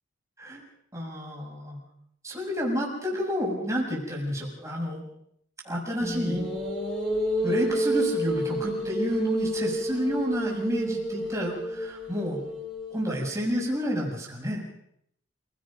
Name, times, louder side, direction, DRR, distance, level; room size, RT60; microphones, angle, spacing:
voice 1, 0.9-1.8 2.2-5.0 5.6-6.4 7.4-12.5 12.9-14.6, equal, 15° right, -2 dB, 6.6 m, -29 dB
sound 1, 6.0-13.4, right 1 dB, 5° left, 7.3 m, -30 dB
29.0 x 17.5 x 5.3 m, 0.70 s
head